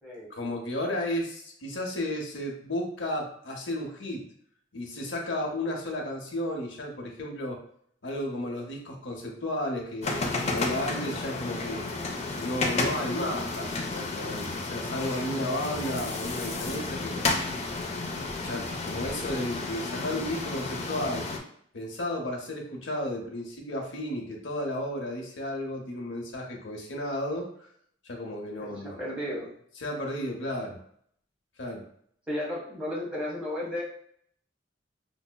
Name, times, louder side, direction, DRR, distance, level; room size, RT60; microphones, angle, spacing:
voice 1, 0.3-4.3 4.7-7.6 8.0-11.8 12.4-17.4 18.4-21.3 21.7-27.7 28.0-29.0 29.8-30.8 31.6-31.8, left 1 dB, 75° left, 0 dB, 0.8 m, -33 dB
sound 1, 10.0-21.4, left 3 dB, 35° left, 0.4 m, -32 dB
voice 2, 28.6-29.5 32.3-33.8, left 1 dB, 5° right, -6 dB, 1.1 m, -34 dB
5.2 x 2.0 x 2.2 m, 0.64 s
head